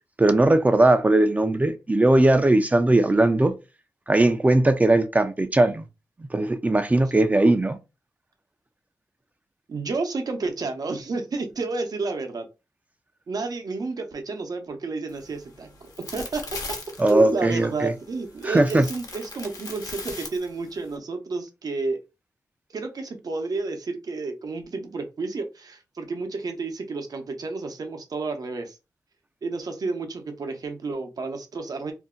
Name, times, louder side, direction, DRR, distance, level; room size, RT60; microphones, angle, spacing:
voice 1, 0.2-3.5 4.1-5.8 6.3-7.8 17.0-17.9 18.4-18.9, right 2 dB, 20° right, 0.4 m, -19 dB
voice 2, 9.7-12.5 13.3-16.5 17.1-22.0 22.7-28.8 29.4-31.9, right 3 dB, 70° right, 0.7 m, -31 dB
sound 1, 15.1-21.0, left 3 dB, 60° left, 0.8 m, -40 dB
2.6 x 2.1 x 3.7 m
wide cardioid pair, 75°, 7 cm